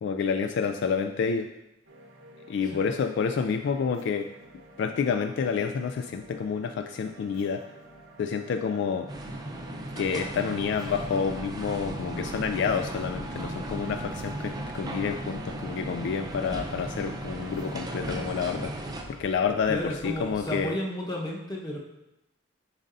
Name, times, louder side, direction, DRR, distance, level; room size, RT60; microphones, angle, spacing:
voice 1, 0.0-1.5 2.5-4.3 4.8-7.6 8.2-9.1 10.0-20.8, left 6 dB, 65° left, 6 dB, 0.3 m, -29 dB
sound 1, 1.9-19.9, right 2 dB, 70° right, 0.9 m, -51 dB
sound 2, 9.1-19.0, right 1 dB, 20° right, 0.6 m, -36 dB
sound 3, 11.3-20.7, equal, 80° left, 2.2 m, -51 dB
voice 2, 19.7-21.8, equal, 20° left, -2 dB, 1.1 m, -32 dB
7.2 x 5.3 x 2.6 m, 0.89 s
head